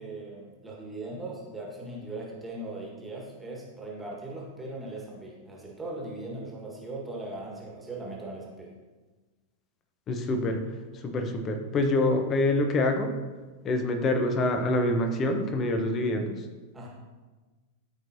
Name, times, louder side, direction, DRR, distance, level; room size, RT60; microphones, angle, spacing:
voice 1, 0.0-8.7 16.7-16.9, right 2 dB, 10° right, -3 dB, 1.7 m, -39 dB
voice 2, 10.1-10.6 10.9-13.2 13.6-16.5, left 2 dB, 30° left, 5 dB, 0.9 m, -26 dB
13.5 x 4.7 x 2.8 m, 1.3 s
figure-of-eight pair, 90°, 0 cm